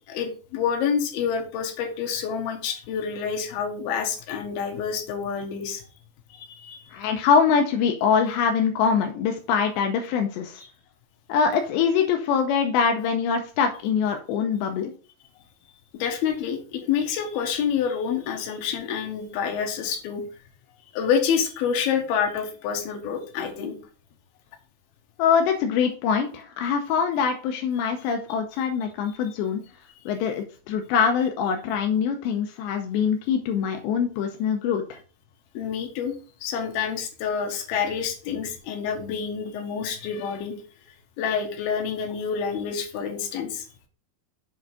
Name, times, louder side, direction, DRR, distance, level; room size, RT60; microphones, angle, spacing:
voice 1, 0.1-5.9 6.3-6.9 10.6-10.7 15.9-20.2 20.9-23.7 35.5-36.1 36.4-40.5 41.2-43.7, left 7 dB, 65° left, 3 dB, 3.0 m, -28 dB
voice 2, 6.9-10.6 11.3-14.9 25.2-29.6 30.1-35.0, left 6 dB, 85° left, 4 dB, 2.8 m, -23 dB
7.1 x 4.9 x 4.9 m, 0.39 s
omnidirectional pair, 5.3 m